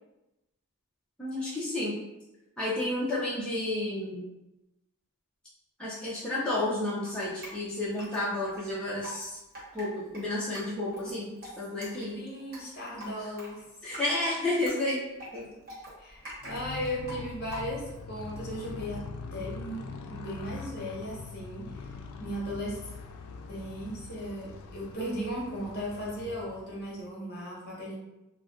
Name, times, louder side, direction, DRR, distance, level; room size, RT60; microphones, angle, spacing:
voice 1, 1.2-1.9 2.6-4.3 5.8-9.4 9.7-11.3 11.6-12.2 13.2-13.3 13.8-15.0 15.3-15.5, left 1 dB, 5° left, -10 dB, 0.5 m, -31 dB
Drip, 7.1-18.0, equal, 40° right, 0.8 m, -46 dB
voice 2, 12.1-13.9 16.0-19.0 19.3-21.9 22.2-22.8 23.5-27.9, equal, 45° left, -5 dB, 0.9 m, -37 dB
Motorcycle, 16.4-27.1, left 4 dB, 90° left, 0.3 m, -43 dB
2.4 x 2.2 x 3.5 m, 0.97 s
head